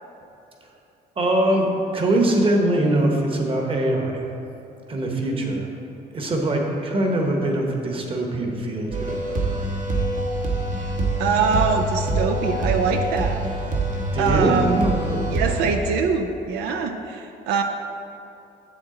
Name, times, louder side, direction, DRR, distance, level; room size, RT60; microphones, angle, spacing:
voice 1, 1.2-4.2 4.9-5.7 6.1-9.5 14.1-15.3, right 1 dB, 30° right, 1 dB, 1.2 m, -22 dB
sound 1, 8.9-15.8, right 2 dB, 50° right, 1.1 m, -25 dB
voice 2, 11.2-13.4 14.2-14.9 15.3-17.6, right 5 dB, 90° right, 5 dB, 0.5 m, -23 dB
7.6 x 7.1 x 3.8 m, 2.8 s
cardioid pair, 110°, 17 cm